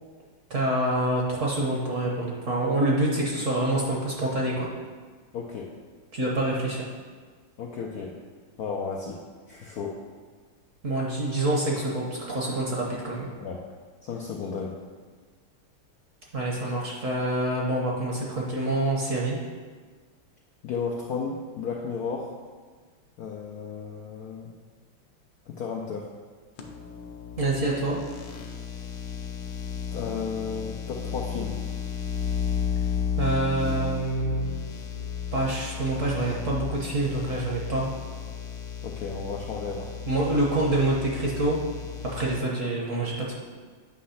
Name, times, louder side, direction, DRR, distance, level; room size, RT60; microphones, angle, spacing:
voice 1, 0.5-4.7 6.1-6.9 10.8-13.3 16.3-19.4 27.4-28.0 33.2-34.5 35.3-37.9 40.1-41.6 42.0-43.3, right 2 dB, 50° right, -3 dB, 1.0 m, -26 dB
voice 2, 5.3-5.7 7.6-8.2 8.6-9.2 9.5-10.0 13.4-13.6 14.0-14.8 20.6-22.3 23.2-24.5 25.5-26.1 28.8-28.9 29.9-31.6 38.8-39.9, left 5 dB, 90° left, -1 dB, 0.8 m, -33 dB
sound 1, 26.6-42.4, left 7 dB, 70° left, 1.3 m, -33 dB
8.5 x 3.1 x 5.6 m, 1.5 s
omnidirectional pair, 2.3 m